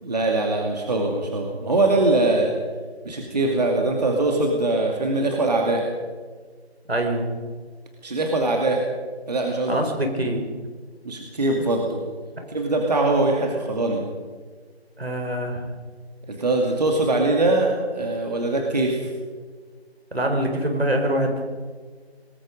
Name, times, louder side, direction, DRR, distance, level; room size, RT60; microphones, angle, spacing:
voice 1, 0.0-2.5 3.0-5.9 8.0-8.8 9.3-9.8 11.0-12.0 12.5-14.0 16.3-19.1, right 2 dB, 40° right, 1 dB, 2.4 m, -22 dB
voice 2, 6.9-7.4 9.7-10.4 15.0-15.7 20.1-21.5, right 1 dB, 70° right, 3 dB, 5.1 m, -24 dB
25.5 x 20.0 x 5.3 m, 1.5 s
figure-of-eight pair, 160°, 33 cm